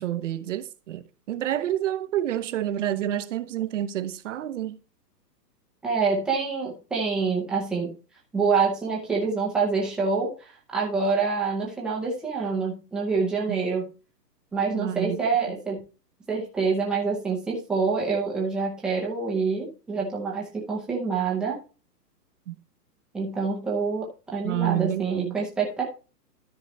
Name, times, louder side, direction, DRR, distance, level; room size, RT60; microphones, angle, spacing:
voice 1, 0.0-4.8 13.5-13.6 14.7-15.2 22.5-22.6 24.4-25.4, right 12 dB, 45° right, 0.8 m, -29 dB
voice 2, 5.8-7.9 8.3-13.8 14.5-15.8 16.3-21.6 23.1-25.8, right 4 dB, ahead, 0.6 m, -26 dB
13.0 x 4.6 x 3.1 m
hypercardioid pair, 150°, 50 cm